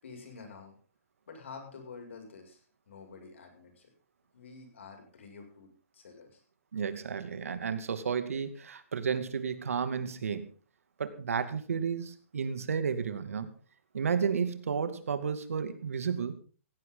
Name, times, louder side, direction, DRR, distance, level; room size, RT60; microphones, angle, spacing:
voice 1, 0.0-0.8 1.3-3.9 4.3-6.4, left 4 dB, 60° left, 4 dB, 6.9 m, -49 dB
voice 2, 6.7-10.5 11.0-13.5 13.9-16.3, right 6 dB, 75° right, 10 dB, 2.5 m, -32 dB
18.0 x 17.0 x 4.0 m, 0.37 s
hypercardioid pair, 175°, 8 cm